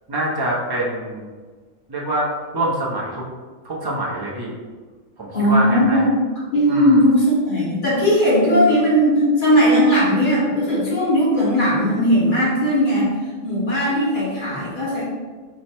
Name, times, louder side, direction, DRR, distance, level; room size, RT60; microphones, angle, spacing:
voice 1, 0.1-1.3 1.9-2.3 2.5-3.2 3.6-4.5 5.2-6.0 6.7-7.0, right 1 dB, 40° right, -4 dB, 0.3 m, -25 dB
voice 2, 5.3-6.2 6.5-13.1 13.4-15.0, equal, 40° left, -8 dB, 1.2 m, -17 dB
3.4 x 2.1 x 4.2 m, 1.4 s
omnidirectional pair, 1.4 m